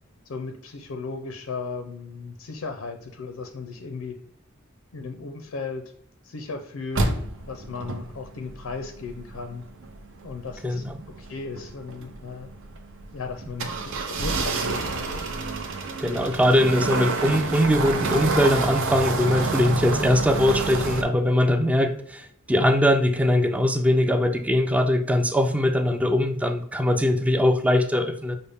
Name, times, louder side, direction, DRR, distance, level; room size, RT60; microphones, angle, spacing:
voice 1, 0.3-4.2 4.9-5.8 6.2-7.1 7.5-9.6 10.2-10.8 11.2-12.5 13.1-15.2, left 4 dB, 85° left, 0.5 m, -36 dB
sound 1, 6.9-21.0, right 3 dB, 65° right, 0.6 m, -29 dB
voice 2, 10.6-11.0 16.0-28.4, left 1 dB, 5° right, 0.3 m, -21 dB
5.3 x 2.1 x 3.4 m
head